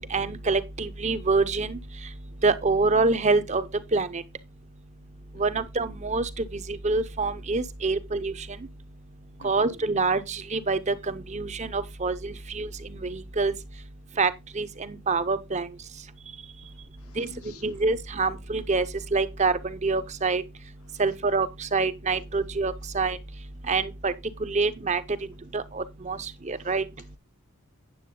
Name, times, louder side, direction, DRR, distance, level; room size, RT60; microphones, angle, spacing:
voice 1, 0.0-1.8 2.4-3.6 3.9-4.2 5.4-6.2 6.8-8.3 9.4-12.7 13.1-13.5 14.2-14.3 14.6-14.7 15.1-15.7 17.2-17.3 17.6-18.8 19.1-19.5 19.8-20.4 21.0-21.5 21.7-23.2 23.7-24.1 24.4-25.0 25.5-26.2 26.5-26.8, right 3 dB, 30° right, 0.7 m, -25 dB
voice 2, 9.4-9.7 17.0-17.6 25.2-25.3, left 4 dB, 80° left, 1.2 m, -50 dB
9.4 x 7.3 x 3.7 m
head